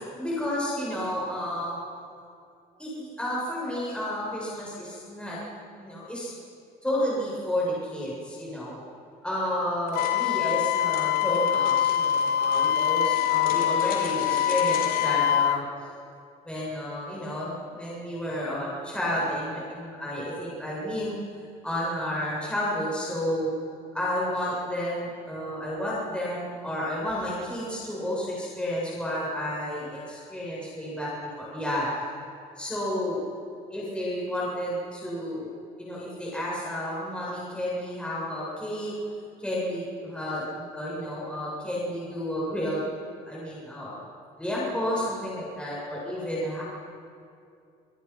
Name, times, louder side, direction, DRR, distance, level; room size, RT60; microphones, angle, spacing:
voice 1, 0.0-1.8 2.8-5.4 5.8-6.3 6.8-8.8 9.2-15.6 16.4-21.2 21.6-23.5 23.9-31.1 31.4-31.8 32.6-33.2 33.7-35.5 35.8-38.9 39.4-42.8 43.2-43.9 44.4-46.6, left 1 dB, 5° left, -6 dB, 7.7 m, -31 dB
Wind instrument woodwind instrument, 9.9-15.6, left 11 dB, 75° left, 0.7 m, -24 dB
sound 1, 9.9-15.2, left 5 dB, 55° left, 4.3 m, -39 dB
27.5 x 19.5 x 5.9 m, 2.5 s
cardioid pair, 110°, 17 cm